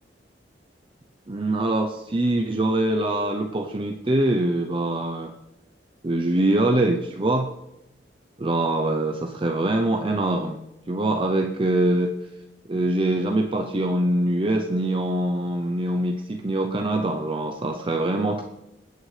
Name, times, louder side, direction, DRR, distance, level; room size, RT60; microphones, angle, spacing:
voice 1, 1.3-5.3 6.0-7.5 8.4-10.6 10.9-12.1 12.7-18.4, right 1 dB, 30° right, 4 dB, 0.6 m, -23 dB
21.0 x 9.1 x 3.3 m, 0.94 s
head